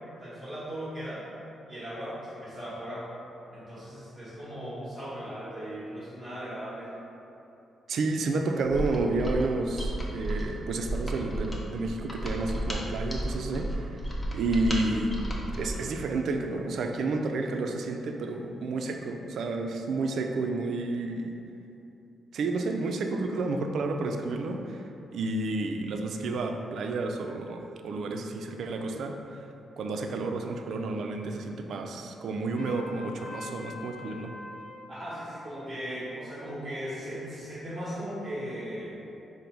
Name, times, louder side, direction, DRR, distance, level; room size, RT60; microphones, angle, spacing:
voice 1, 0.2-1.3 1.7-3.1 3.5-6.9 34.9-38.9, equal, 30° right, -11 dB, 1.1 m, -38 dB
voice 2, 7.9-14.0 14.3-15.2 15.5-21.3 22.3-29.2 29.8-34.3, right 3 dB, 60° right, 4 dB, 0.3 m, -31 dB
Mechanisms, 8.7-15.9, right 1 dB, 15° left, 0.5 m, -33 dB
Trumpet, 32.6-34.8, left 3 dB, 55° left, 0.7 m, -43 dB
5.3 x 2.0 x 4.4 m, 2.9 s
wide cardioid pair, 175°, 0 cm